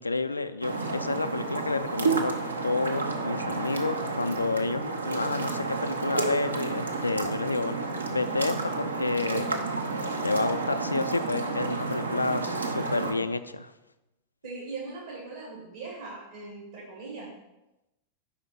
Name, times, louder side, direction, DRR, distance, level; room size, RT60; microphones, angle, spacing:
voice 1, 0.0-2.3 2.6-7.8 8.1-9.5 10.2-13.7, left 3 dB, 80° left, 11 dB, 0.3 m, -30 dB
sound 1, 0.6-13.1, right 3 dB, 80° right, 0.7 m, -31 dB
voice 2, 14.4-17.3, right 3 dB, 60° right, -4 dB, 1.5 m, -40 dB
5.0 x 4.3 x 5.6 m, 0.96 s
figure-of-eight pair, 90°, 0 cm